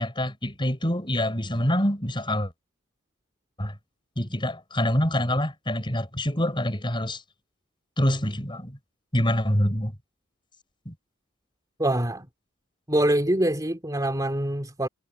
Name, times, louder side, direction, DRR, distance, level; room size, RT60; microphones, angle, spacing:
voice 1, 0.0-2.5 3.6-3.8 4.2-7.2 8.0-8.8 9.1-9.9 10.9-11.0, left 1 dB, 25° left, 5.6 m, -26 dB
voice 2, 11.8-12.3 12.9-14.9, right 1 dB, 15° right, 3.4 m, -24 dB
head